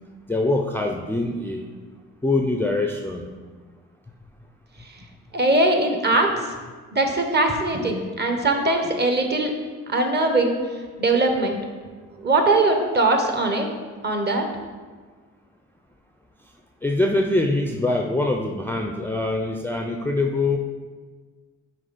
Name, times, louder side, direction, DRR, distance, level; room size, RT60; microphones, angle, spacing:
voice 1, 0.3-1.7 2.2-3.3 16.8-20.6, left 2 dB, 5° left, 2 dB, 0.4 m, -23 dB
voice 2, 5.3-6.3 6.9-9.5 9.9-10.6 11.0-11.6 12.2-13.7 14.0-14.4, right 2 dB, 35° right, 4 dB, 1.1 m, -21 dB
6.4 x 4.4 x 4.2 m, 1.5 s
cardioid pair, 90°, 30 cm